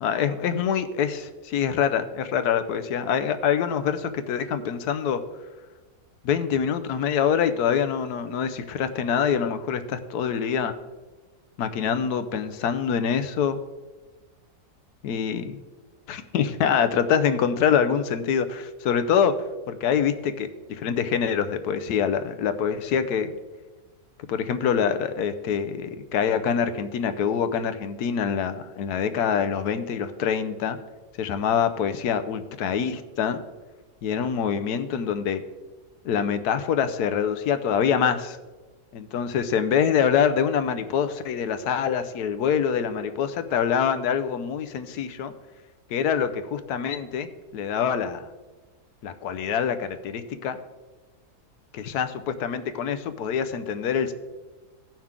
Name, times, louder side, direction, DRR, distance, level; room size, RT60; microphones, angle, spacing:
voice 1, 0.0-5.2 6.2-10.7 11.6-13.6 15.0-15.6 16.1-19.3 19.7-23.3 24.3-30.8 31.2-33.4 34.0-35.4 36.0-38.4 38.9-45.3 45.9-48.3 49.0-50.6 51.7-54.1, left 7 dB, 85° left, 11 dB, 1.2 m, -25 dB
16.0 x 5.9 x 3.7 m, 1.2 s
omnidirectional pair, 1.6 m